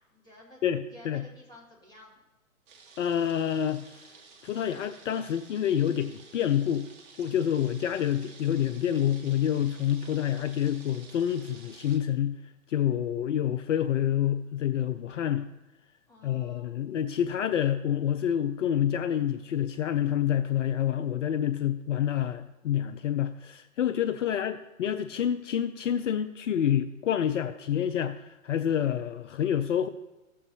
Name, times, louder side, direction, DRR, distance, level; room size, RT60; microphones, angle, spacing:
voice 1, 0.1-0.6 0.9-2.2 16.1-16.7 24.2-24.6, left 1 dB, 10° left, -4 dB, 2.1 m, -52 dB
voice 2, 0.6-1.2 3.0-4.0 4.4-6.9 7.2-12.4 12.7-15.5 16.2-29.9, left 10 dB, 60° left, 11 dB, 0.5 m, -28 dB
sound 1, 2.7-12.0, right 4 dB, 35° right, 1.5 m, -53 dB
14.5 x 7.4 x 2.8 m, 1.1 s
figure-of-eight pair, 120°, 41 cm